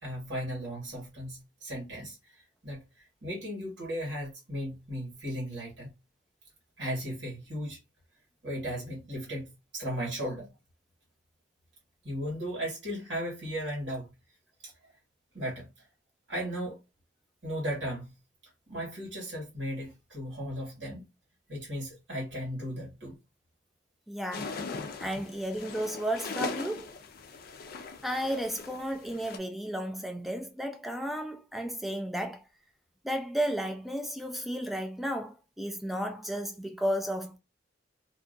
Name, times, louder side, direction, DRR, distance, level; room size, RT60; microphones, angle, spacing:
voice 1, 0.0-5.9 6.8-7.8 8.4-10.5 12.0-14.1 14.6-14.9 15.3-15.9 16.3-16.8 17.4-18.1 18.7-21.0 21.5-23.2, equal, 70° right, 1.6 m, -36 dB
voice 2, 24.1-24.5 25.0-26.9 28.0-32.4 33.0-37.4, equal, ahead, 0.4 m, -33 dB
sound 1, 24.3-29.4, left 4 dB, 55° left, 0.5 m, -40 dB
2.7 x 2.4 x 2.6 m
head